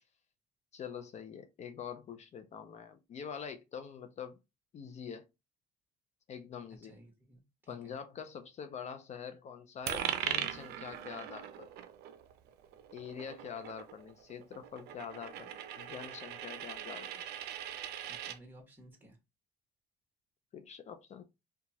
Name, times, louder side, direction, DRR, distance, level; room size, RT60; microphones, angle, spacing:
voice 1, 0.7-4.4 4.7-5.3 6.3-6.9 7.7-11.7 12.9-15.5 15.8-17.1 20.5-21.2, left 7 dB, 40° left, 0.4 m, -45 dB
voice 2, 6.8-8.0 18.0-19.2, right 1 dB, 10° right, 1.3 m, -57 dB
Coin (dropping), 9.9-18.4, right 10 dB, 70° right, 0.5 m, -40 dB
2.9 x 2.3 x 2.7 m
cardioid pair, 110°, 17 cm